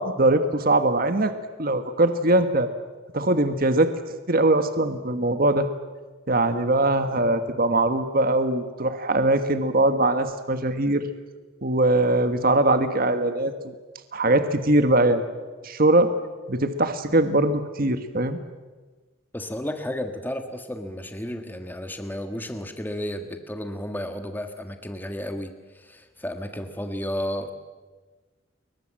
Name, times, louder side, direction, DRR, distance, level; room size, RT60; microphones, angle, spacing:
voice 1, 0.0-1.3 1.6-2.7 3.1-3.9 4.3-5.7 6.3-11.0 11.6-13.5 14.1-15.2 15.6-16.1 16.5-18.4, right 2 dB, 45° right, 9 dB, 1.6 m, -21 dB
voice 2, 19.3-27.5, left 1 dB, 10° left, 6 dB, 1.6 m, -32 dB
30.0 x 23.0 x 7.7 m, 1.3 s
head